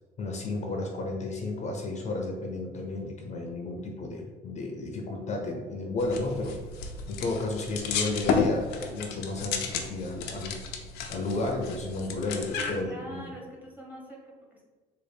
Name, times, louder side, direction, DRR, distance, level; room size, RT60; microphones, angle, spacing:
voice 1, 0.2-6.5 7.1-10.6 11.1-13.3, left 2 dB, 45° left, 2 dB, 0.6 m, -32 dB
sound 1, 6.0-12.8, left 5 dB, 90° left, 0.5 m, -33 dB
voice 2, 12.5-14.6, equal, 10° right, -2 dB, 0.9 m, -44 dB
3.9 x 2.1 x 3.4 m, 1.4 s
cardioid pair, 110°, 17 cm